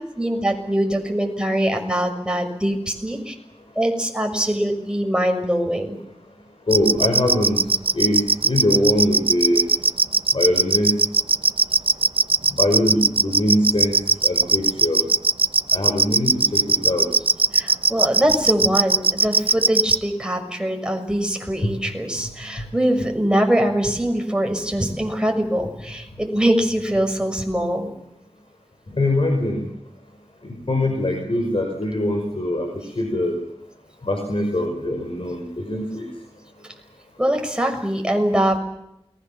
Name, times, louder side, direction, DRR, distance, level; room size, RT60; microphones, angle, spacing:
voice 1, 0.2-3.3 3.7-6.0 17.5-27.9 37.2-38.6, right 1 dB, 10° right, 4 dB, 6.4 m, -22 dB
voice 2, 6.7-7.6 7.9-9.6 10.3-10.9 12.5-13.9 14.2-15.0 15.7-17.1 21.6-21.7 22.6-22.7 29.0-29.6 30.4-32.7 33.0-33.3 34.0-36.1, left 1 dB, 55° left, 3 dB, 5.4 m, -22 dB
sound 1, 6.7-20.0, right 3 dB, 55° right, 1.0 m, -18 dB
29.0 x 21.5 x 7.3 m, 0.82 s
wide cardioid pair, 60°, 11 cm